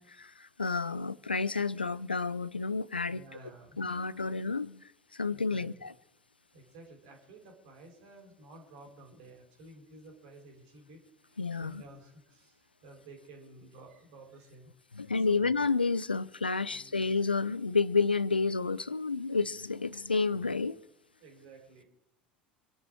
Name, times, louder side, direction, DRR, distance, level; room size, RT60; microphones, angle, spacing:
voice 1, 0.0-3.2 3.8-4.8 5.1-5.9 11.4-11.8 14.9-20.8, left 4 dB, 90° left, 0.5 m, -30 dB
voice 2, 3.1-3.8 5.3-5.9 6.5-15.4 16.7-17.1 21.2-21.9, right 2 dB, 60° right, 4.3 m, -53 dB
26.0 x 11.0 x 4.9 m
figure-of-eight pair, 70°, 5 cm